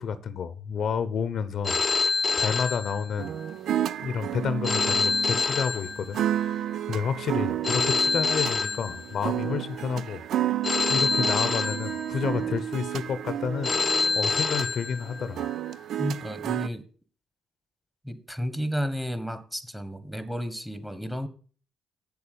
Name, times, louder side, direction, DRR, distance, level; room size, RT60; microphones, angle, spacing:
voice 1, 0.0-3.3 4.0-10.2 10.9-13.7 14.2-15.5, left 6 dB, 60° left, 0.8 m, -30 dB
Telephone, 1.6-3.5 4.6-6.5 7.6-9.5 10.6-12.5 13.6-15.5, left 4 dB, 35° left, 0.4 m, -27 dB
sound 1, 3.2-16.7, right 11 dB, 70° right, 0.4 m, -31 dB
voice 2, 16.0-16.9 18.0-21.3, equal, 5° right, 1.4 m, -32 dB
8.3 x 7.1 x 6.8 m
supercardioid pair, 70°, 0 cm